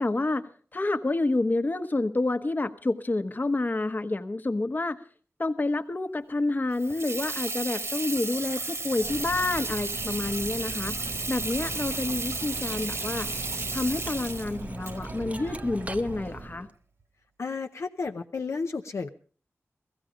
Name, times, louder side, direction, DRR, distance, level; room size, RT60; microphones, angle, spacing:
voice 1, 0.0-5.0 5.4-10.9 11.3-13.3 13.7-16.7, left 2 dB, 40° left, 9 dB, 1.1 m, -28 dB
Water tap faucet / Sink (filling or washing), 6.7-16.3, right 3 dB, 70° right, 1.6 m, -34 dB
Cutlery silverware, 9.0-16.7, right 2 dB, 30° right, 0.7 m, -39 dB
voice 2, 17.4-19.1, left 4 dB, 70° left, 4 dB, 0.7 m, -32 dB
16.0 x 15.0 x 5.0 m, 0.41 s
wide cardioid pair, 70°, 5 cm